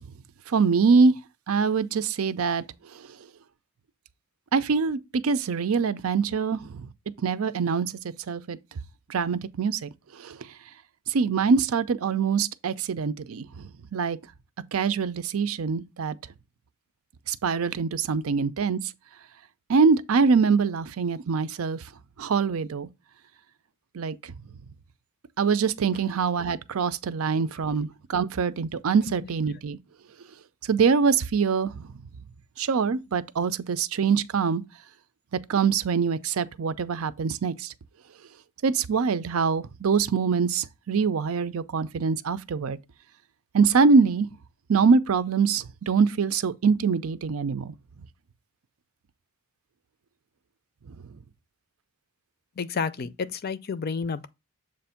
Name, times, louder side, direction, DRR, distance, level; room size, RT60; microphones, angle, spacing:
voice 1, 0.5-1.1 1.5-2.6 4.5-6.6 7.2-7.9 8.3-8.6 9.1-9.9 10.2-10.3 11.1-13.5 13.9-14.2 14.7-16.1 17.3-18.8 19.7-21.8 22.2-22.9 23.9-24.2 25.4-29.8 30.7-31.9 32.6-34.6 35.5-37.5 38.6-42.8 43.5-44.3 44.7-47.7, right 5 dB, 80° right, 0.5 m, -24 dB
voice 2, 27.2-27.5 29.2-29.3 52.6-54.3, left 5 dB, 45° left, 0.5 m, -31 dB
7.4 x 2.6 x 5.6 m
head